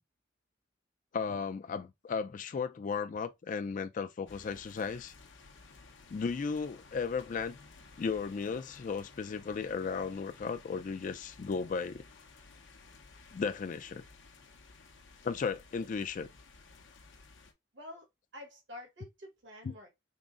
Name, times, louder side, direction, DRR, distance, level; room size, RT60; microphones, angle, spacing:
voice 1, 1.1-5.1 6.1-7.6 8.0-12.1 13.3-14.0 15.2-16.3, left 5 dB, 45° left, 0.3 m, -35 dB
sound 1, 4.3-17.5, left 4 dB, 75° left, 0.7 m, -56 dB
voice 2, 17.7-19.9, left 1 dB, 70° right, 1.3 m, -49 dB
3.7 x 2.0 x 3.6 m
head